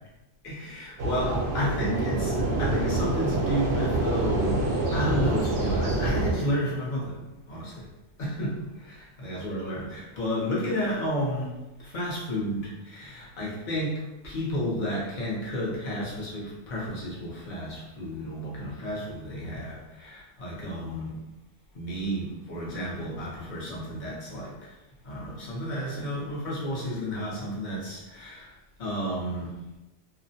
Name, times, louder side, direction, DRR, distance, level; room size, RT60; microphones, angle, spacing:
voice 1, 0.4-4.6 4.9-7.2 7.5-7.9 8.2-11.5 11.8-21.2 21.7-24.8 25.0-28.5 28.8-29.5, equal, 50° left, -5 dB, 0.7 m, -32 dB
sound 1, 1.0-6.3, right 2 dB, 70° right, 0.8 m, -26 dB
2.4 x 2.0 x 2.6 m, 1.0 s
omnidirectional pair, 1.1 m